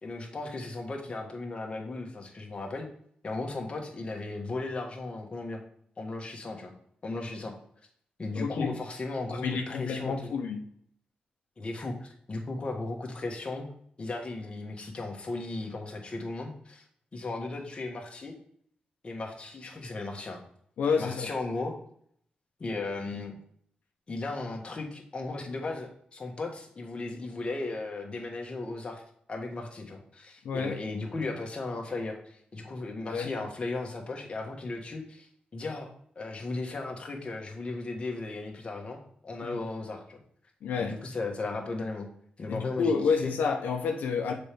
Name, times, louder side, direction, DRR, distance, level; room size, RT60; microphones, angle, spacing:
voice 1, 0.0-2.9 3.2-5.6 6.0-6.7 7.0-7.5 8.2-10.4 11.6-13.7 14.0-16.8 17.1-18.3 19.0-20.4 21.0-21.7 22.6-23.4 24.1-29.0 29.3-35.9 36.1-39.0 39.2-40.2 40.8-42.1 42.4-43.3, left 3 dB, 40° left, 1 dB, 1.4 m, -36 dB
voice 2, 8.3-8.7 9.4-10.6 20.8-21.3 30.4-30.8 33.1-33.3 39.4-39.6 40.6-40.9 42.5-44.3, left 5 dB, 90° left, 2 dB, 0.8 m, -29 dB
6.7 x 4.4 x 3.4 m, 0.65 s
cardioid pair, 100°, 3 cm